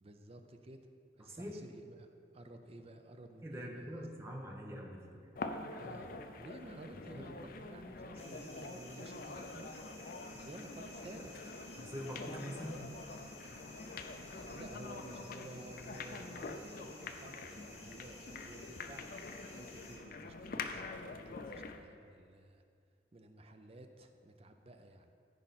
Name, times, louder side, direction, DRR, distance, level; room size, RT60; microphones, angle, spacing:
voice 1, 0.0-0.8 1.2-4.0 5.7-6.1 6.4-10.1 10.4-11.6 14.5-19.1 19.6-22.6 23.1-25.1, right 1 dB, 35° right, 6 dB, 0.6 m, -53 dB
voice 2, 1.2-1.6 3.4-5.3 7.1-7.3 11.8-12.9, equal, 15° right, -1 dB, 1.1 m, -44 dB
sound 1, 5.4-21.9, left 3 dB, 55° left, 0.5 m, -46 dB
sound 2, 8.2-20.0, left 2 dB, 35° left, 1.3 m, -55 dB
14.5 x 5.0 x 4.2 m, 2.3 s
head